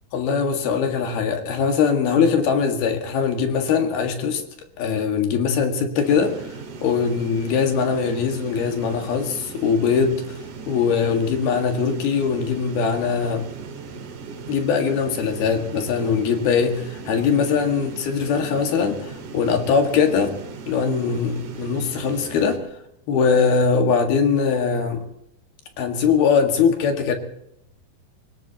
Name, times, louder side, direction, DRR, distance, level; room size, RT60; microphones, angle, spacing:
voice 1, 0.1-4.4 4.8-6.3 6.8-10.2 10.7-13.4 14.5-20.3 20.7-22.6 23.1-25.0 25.8-27.1, left 6 dB, 85° left, 5 dB, 3.9 m, -21 dB
sound 1, 6.0-22.6, right 5 dB, 60° right, 3.3 m, -38 dB
25.5 x 18.5 x 3.0 m, 0.80 s
omnidirectional pair, 4.3 m